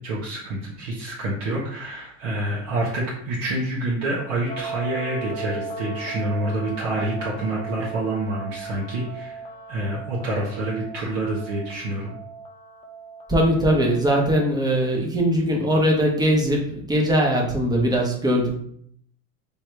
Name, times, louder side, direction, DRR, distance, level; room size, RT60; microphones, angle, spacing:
voice 1, 0.0-9.4 9.7-12.1, right 1 dB, 60° right, -5 dB, 1.3 m, -27 dB
sound 1, 4.5-14.2, right 3 dB, 15° left, 0.5 m, -37 dB
voice 2, 13.3-16.6 16.9-18.6, equal, 10° right, 0 dB, 1.0 m, -20 dB
3.4 x 3.1 x 4.5 m, 0.66 s
supercardioid pair, 120°, 41 cm